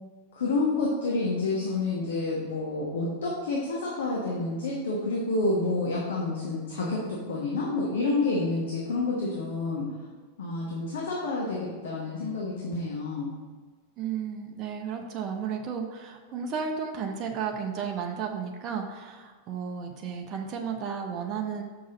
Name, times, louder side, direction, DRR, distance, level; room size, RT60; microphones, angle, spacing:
voice 1, 0.3-9.8 10.4-13.3, left 3 dB, 60° left, -3 dB, 1.2 m, -29 dB
voice 2, 14.0-21.6, right 6 dB, 35° right, 2 dB, 0.7 m, -33 dB
6.4 x 5.8 x 3.9 m, 1.5 s
figure-of-eight pair, 90°, 0 cm